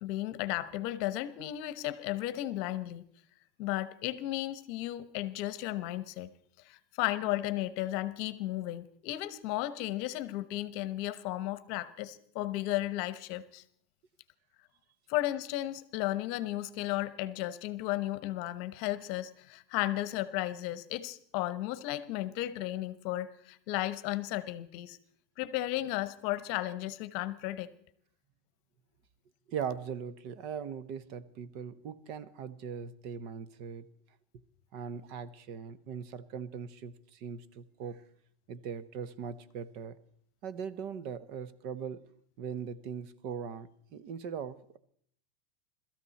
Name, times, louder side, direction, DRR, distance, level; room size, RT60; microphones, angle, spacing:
voice 1, 0.0-3.0 3.6-6.3 6.6-13.6 15.1-25.0 25.4-27.7, left 15 dB, 50° left, 16 dB, 1.0 m, -34 dB
voice 2, 29.5-33.9 34.7-38.0 38.5-40.0 40.4-42.1 42.4-44.8, right 7 dB, 45° right, 16 dB, 0.8 m, -40 dB
22.5 x 13.5 x 4.2 m, 0.65 s
supercardioid pair, 150°, 0 cm